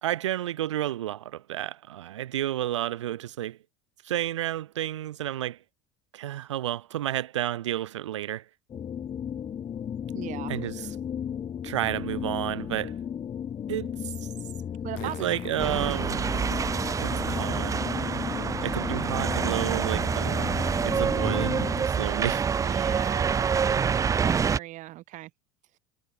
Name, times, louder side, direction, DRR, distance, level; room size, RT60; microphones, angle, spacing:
voice 1, 0.0-3.6 4.0-5.6 6.1-8.4 10.5-10.9 11.6-13.0 13.7-13.9 15.0-16.3 17.0-17.8 18.6-22.4, right 13 dB, 90° right, 1.5 m, -31 dB
sound 1, 8.7-21.9, left 8 dB, 35° left, 3.1 m, -35 dB
voice 2, 10.1-10.7 14.8-15.3 22.6-25.3, right 17 dB, 55° right, 6.4 m, -38 dB
Fart, 13.9-14.0 15.0-17.5 19.9-20.0, left 21 dB, 60° left, 4.7 m, -49 dB
sound 2, 15.6-24.6, right 6 dB, 20° right, 0.5 m, -27 dB
hypercardioid pair, 85°, 15 cm